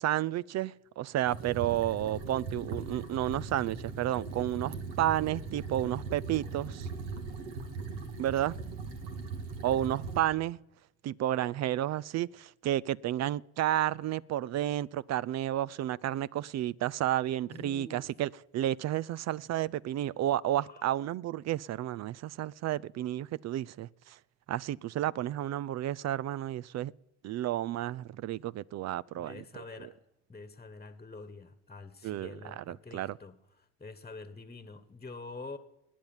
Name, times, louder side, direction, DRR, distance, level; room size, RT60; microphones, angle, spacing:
voice 1, 0.0-6.9 8.2-8.6 9.6-10.6 11.0-24.2 24.5-26.9 27.2-29.4 29.8-29.9 32.0-33.2, right 13 dB, 50° right, 0.5 m, -31 dB
sound 1, 1.2-10.2, right 4 dB, 80° right, 2.0 m, -39 dB
voice 2, 17.4-18.1 20.6-20.9 29.1-29.9 30.3-35.6, left 3 dB, 15° left, 1.4 m, -47 dB
20.0 x 9.3 x 7.2 m
supercardioid pair, 70°, 35 cm